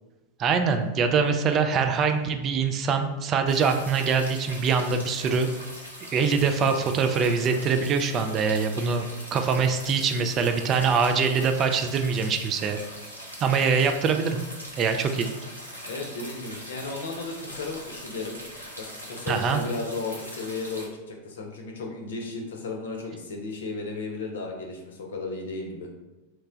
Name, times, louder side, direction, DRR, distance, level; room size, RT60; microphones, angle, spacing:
voice 1, 0.4-5.5 6.1-12.8 13.4-14.4 14.8-15.3 19.3-19.6, right 5 dB, 30° right, 6 dB, 0.3 m, -24 dB
sound 1, 3.5-20.9, equal, 90° right, 0.7 m, -41 dB
voice 2, 15.8-18.4 18.8-25.9, left 3 dB, 65° left, 1 dB, 0.6 m, -34 dB
3.1 x 2.1 x 3.7 m, 1.1 s
figure-of-eight pair, 90°, 0 cm